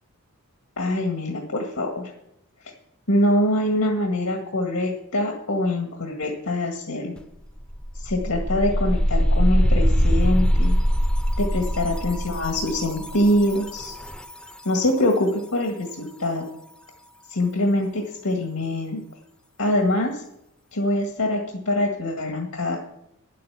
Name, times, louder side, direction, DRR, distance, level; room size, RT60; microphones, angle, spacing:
voice 1, 0.8-2.1 3.1-7.1 8.0-10.8 11.4-13.9 14.7-16.5 17.3-19.0 19.6-20.2 20.7-22.8, left 1 dB, 80° left, 1 dB, 1.9 m, -24 dB
sound 1, 7.2-7.3 7.6-14.4, equal, 5° left, 0.5 m, -22 dB
10.5 x 8.4 x 7.1 m, 0.78 s
head